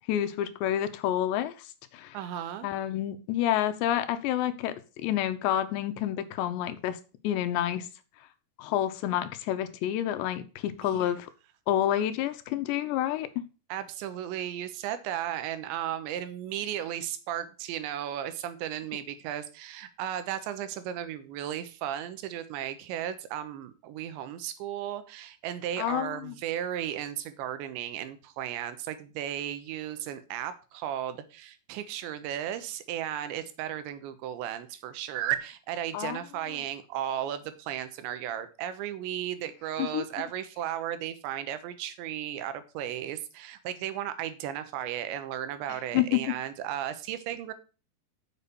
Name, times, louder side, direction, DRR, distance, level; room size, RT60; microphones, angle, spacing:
voice 1, 0.1-1.5 1.9-2.2 2.6-7.0 7.2-7.9 8.6-11.3 11.7-13.3 25.8-26.4 35.9-36.2 39.8-40.0 45.9-46.2, left 11 dB, 80° left, 11 dB, 3.0 m, -29 dB
voice 2, 2.1-2.7 10.8-11.1 13.7-47.5, right 11 dB, 85° right, 11 dB, 3.3 m, -35 dB
7.3 x 6.5 x 6.8 m, 0.34 s
omnidirectional pair, 5.1 m